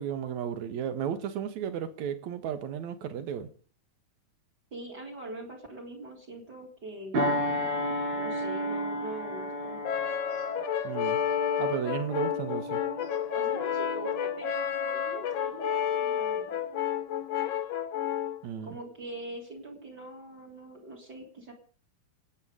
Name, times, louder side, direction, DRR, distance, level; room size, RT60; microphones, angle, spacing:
voice 1, 0.0-3.5 10.8-11.2 11.6-12.8 18.4-18.8, right 8 dB, 60° right, 2.4 m, -34 dB
voice 2, 4.7-7.4 8.1-9.8 13.3-16.6 18.6-21.5, right 2 dB, 30° right, 3.5 m, -43 dB
sound 1, 7.1-16.0 16.5-16.7, equal, 85° right, 7.5 m, -34 dB
Brass instrument, 9.8-18.4, left 9 dB, 65° left, 1.7 m, -30 dB
27.0 x 9.2 x 5.0 m
omnidirectional pair, 4.1 m